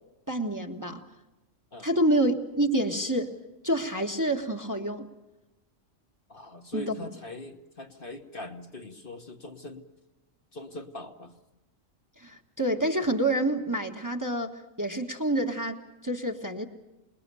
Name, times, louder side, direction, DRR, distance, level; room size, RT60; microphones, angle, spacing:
voice 1, 0.3-1.0 1.8-3.4 3.6-5.1 6.7-7.1 12.2-16.7, right 1 dB, 15° right, 3 dB, 1.4 m, -28 dB
voice 2, 6.3-9.8 10.5-11.4, left 1 dB, 45° left, 4 dB, 1.5 m, -41 dB
27.5 x 20.5 x 6.9 m, 1.0 s
omnidirectional pair, 1.4 m